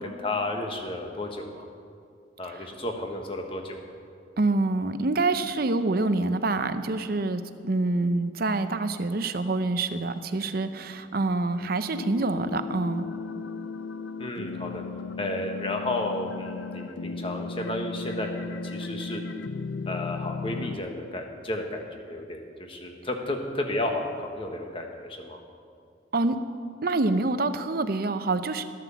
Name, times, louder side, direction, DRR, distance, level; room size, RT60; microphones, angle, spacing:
voice 1, 0.0-1.7 2.4-3.8 14.2-14.8 15.2-19.2 19.9-25.4, left 1 dB, 30° left, 3 dB, 1.3 m, -32 dB
voice 2, 4.4-13.1 26.1-26.4 26.8-28.6, right 2 dB, 55° right, 10 dB, 0.6 m, -26 dB
sound 1, 11.9-20.8, left 4 dB, 75° left, 0.5 m, -35 dB
13.0 x 9.2 x 7.0 m, 2.3 s
head